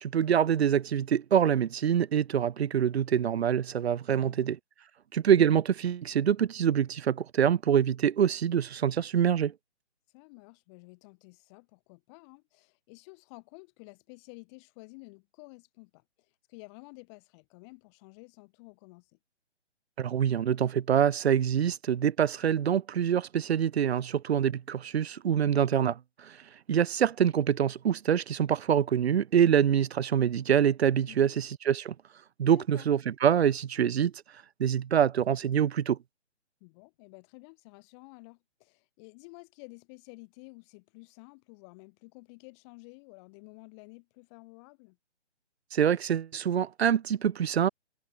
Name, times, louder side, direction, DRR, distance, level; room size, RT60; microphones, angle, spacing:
voice 1, 0.0-4.6 5.1-9.5 20.0-26.4 26.7-31.9 32.4-34.1 34.6-36.0 45.7-47.7, right 9 dB, 65° right, 0.6 m, -25 dB
voice 2, 4.1-4.5 10.1-19.2 31.1-31.4 32.5-32.9 36.6-45.0, left 30 dB, 25° left, 3.6 m, -52 dB
figure-of-eight pair, 145°, 35 cm